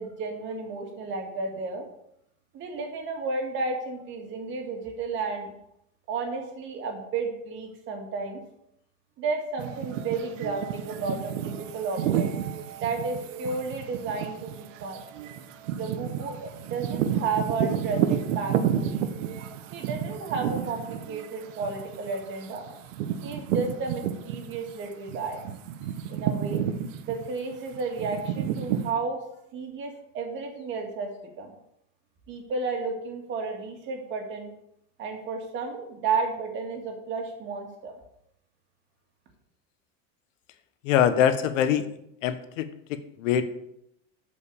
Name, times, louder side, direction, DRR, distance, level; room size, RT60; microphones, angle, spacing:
voice 1, 0.0-1.8 2.5-5.5 6.1-8.4 9.2-12.3 12.8-15.0 15.7-19.1 19.7-22.7 23.2-25.4 26.1-26.6 27.0-29.2 29.5-31.1 31.4-31.5 32.3-34.5 35.0-38.0, right 4 dB, 30° right, 2 dB, 2.3 m, -32 dB
sound 1, 9.6-24.7 25.1-28.9, right 9 dB, 85° right, 1.2 m, -31 dB
voice 2, 40.8-41.9 42.2-43.5, left 9 dB, 85° left, 10 dB, 1.2 m, -24 dB
12.0 x 5.4 x 7.0 m, 0.77 s
supercardioid pair, 170°, 37 cm